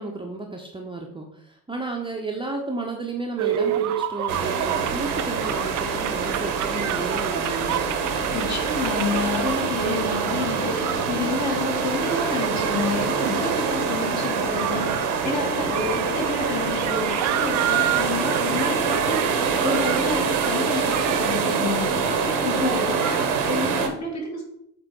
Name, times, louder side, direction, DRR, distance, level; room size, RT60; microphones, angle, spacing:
voice 1, 0.0-7.9, right 3 dB, 10° right, 1 dB, 0.8 m, -32 dB
sound 1, 3.4-23.3, right 11 dB, 40° right, 0.5 m, -31 dB
sound 2, 4.3-23.9, right 5 dB, 70° right, 1.0 m, -25 dB
voice 2, 8.3-24.4, left 3 dB, 40° left, -2 dB, 2.6 m, -29 dB
7.8 x 3.7 x 3.8 m, 0.74 s
figure-of-eight pair, 45°, 44 cm